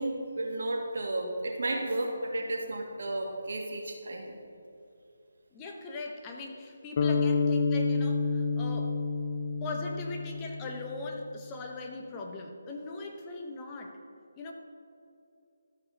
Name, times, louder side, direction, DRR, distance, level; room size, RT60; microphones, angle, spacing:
voice 1, 0.0-4.4, right 2 dB, 65° right, 0 dB, 2.0 m, -33 dB
voice 2, 5.5-9.0 9.6-14.0 14.4-14.5, left 3 dB, 20° left, 2 dB, 1.0 m, -40 dB
sound 1, 7.0-11.2, left 4 dB, 40° left, 0.4 m, -29 dB
13.5 x 4.8 x 5.4 m, 2.6 s
figure-of-eight pair, 155°, 0 cm